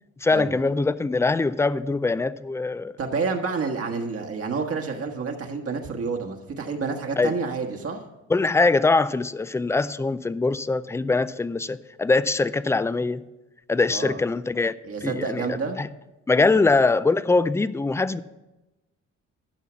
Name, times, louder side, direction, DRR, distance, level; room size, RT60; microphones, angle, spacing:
voice 1, 0.2-2.9 7.2-7.4 8.3-13.2 13.7-14.7 15.0-15.5 15.8-15.9 16.3-18.2, left 3 dB, 10° left, 16 dB, 0.3 m, -22 dB
voice 2, 3.0-8.0 13.9-14.2 14.8-15.8 16.5-16.6, right 4 dB, 50° right, 2 dB, 1.4 m, -29 dB
12.0 x 5.7 x 6.1 m, 1.0 s
cardioid pair, 90°, 30 cm